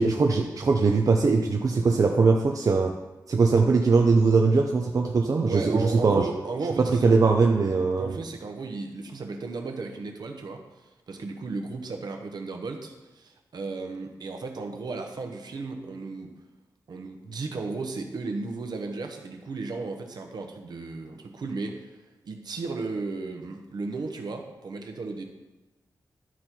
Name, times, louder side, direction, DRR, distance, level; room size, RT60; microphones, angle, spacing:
voice 1, 0.0-2.9 3.3-6.3 6.8-8.2, right 4 dB, 50° right, 2 dB, 0.6 m, -21 dB
voice 2, 5.4-7.2 7.9-10.6 11.1-16.3 16.9-21.9 22.2-25.2, right 3 dB, 70° right, 4 dB, 1.1 m, -34 dB
12.5 x 4.3 x 4.5 m, 1.1 s
wide cardioid pair, 95°, 7 cm